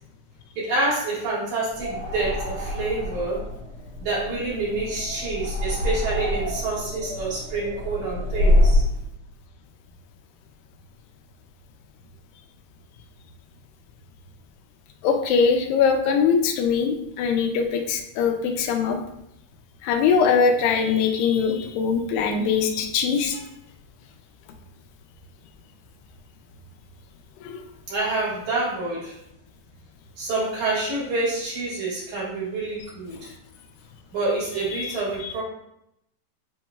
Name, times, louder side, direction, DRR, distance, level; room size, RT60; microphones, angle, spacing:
voice 1, 0.6-3.4 4.0-8.8 27.9-29.2 30.2-33.3 34.1-35.4, right 2 dB, 65° right, -8 dB, 3.1 m, -27 dB
sound 1, 1.7-9.0, left 1 dB, 85° right, 0.5 m, -25 dB
voice 2, 15.0-19.0 19.8-23.4 27.4-27.6 34.7-35.0, left 6 dB, 90° left, 4 dB, 2.3 m, -22 dB
7.8 x 3.0 x 2.3 m, 0.80 s
omnidirectional pair, 4.0 m